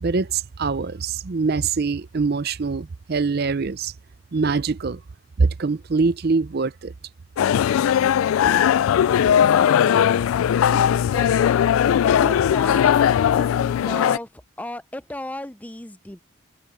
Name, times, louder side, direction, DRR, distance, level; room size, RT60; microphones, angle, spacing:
voice 1, 0.0-3.9 4.3-5.0 5.4-6.9, right 4 dB, 50° right, 0.5 m, -23 dB
sound 1, 7.4-14.2, left 9 dB, 80° left, 0.3 m, -18 dB
voice 2, 8.0-8.9 10.7-16.2, left 1 dB, 5° left, 0.7 m, -36 dB
head